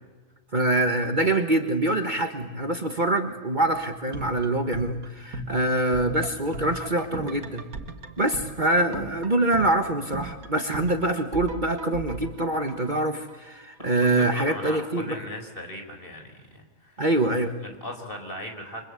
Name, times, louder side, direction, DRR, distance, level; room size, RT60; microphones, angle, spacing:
voice 1, 0.5-7.7 8.2-15.2 17.0-17.5, right 2 dB, 35° right, 6 dB, 1.7 m, -25 dB
sound 1, 3.7-13.6 13.9-14.0, right 4 dB, 85° right, 2.2 m, -39 dB
voice 2, 14.0-17.0 17.6-18.9, left 1 dB, 40° left, 5 dB, 4.7 m, -38 dB
29.0 x 24.5 x 8.3 m, 1.2 s
omnidirectional pair, 1.5 m